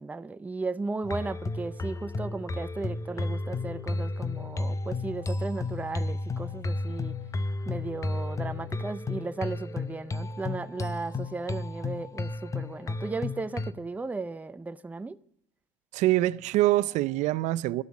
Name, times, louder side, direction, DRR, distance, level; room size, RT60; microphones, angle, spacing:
voice 1, 0.0-7.1 7.7-15.2, right 3 dB, 10° right, 0.5 m, -35 dB
sound 1, 1.0-13.7, left 3 dB, 25° left, 0.7 m, -33 dB
voice 2, 15.9-17.8, right 16 dB, 65° right, 0.6 m, -24 dB
13.0 x 12.5 x 7.2 m
supercardioid pair, 100°, 13 cm